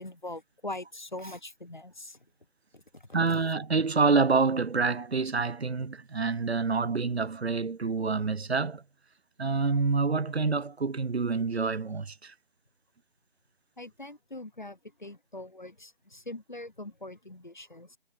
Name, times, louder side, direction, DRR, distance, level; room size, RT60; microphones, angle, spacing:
voice 1, 0.0-2.2 2.7-3.1 13.8-18.0, left 2 dB, 50° left, 0.8 m, -42 dB
voice 2, 3.1-8.8 9.4-12.3, right 4 dB, 80° right, 0.7 m, -27 dB
figure-of-eight pair, 175°, 32 cm